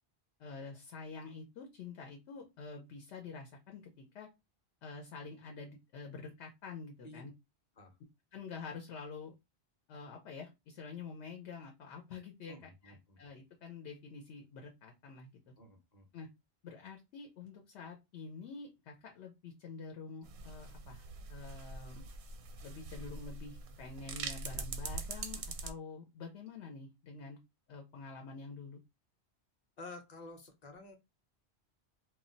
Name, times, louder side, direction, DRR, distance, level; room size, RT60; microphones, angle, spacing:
voice 1, 0.4-4.3 4.8-7.3 8.3-9.3 9.9-15.5 16.1-16.3 16.6-22.0 22.6-27.4 27.7-28.8, left 4 dB, 85° left, 3 dB, 0.9 m, -47 dB
voice 2, 12.5-13.2 15.6-16.1 29.8-31.0, left 2 dB, 45° left, 4 dB, 0.7 m, -51 dB
sound 1, 20.2-25.7, right 4 dB, 80° right, 0.9 m, -43 dB
2.3 x 2.1 x 3.8 m, 0.23 s
omnidirectional pair, 1.1 m